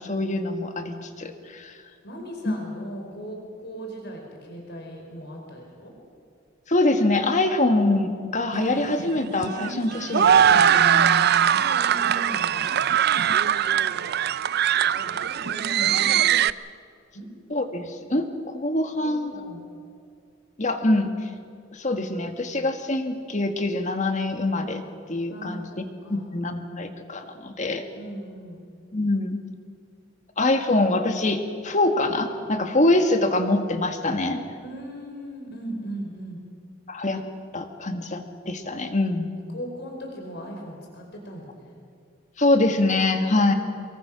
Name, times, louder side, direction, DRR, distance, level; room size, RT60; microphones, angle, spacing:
voice 1, 0.0-1.7 2.5-2.6 6.7-11.3 17.5-18.3 18.5-19.3 20.6-21.1 21.7-24.8 25.1-25.7 26.1-27.8 28.9-29.4 30.4-34.4 36.9-37.2 37.5-39.3 42.4-43.5, left 2 dB, 40° left, 6 dB, 1.8 m, -24 dB
voice 2, 2.0-5.9 11.2-13.0 15.0-16.2 17.1-17.3 18.9-19.6 25.3-26.3 28.0-28.7 34.6-36.4 39.5-41.8, right 1 dB, 55° left, 1 dB, 4.7 m, -38 dB
sound 1, 8.5-16.5, right 9 dB, 55° right, 0.5 m, -21 dB
24.0 x 22.0 x 6.2 m, 2.3 s
head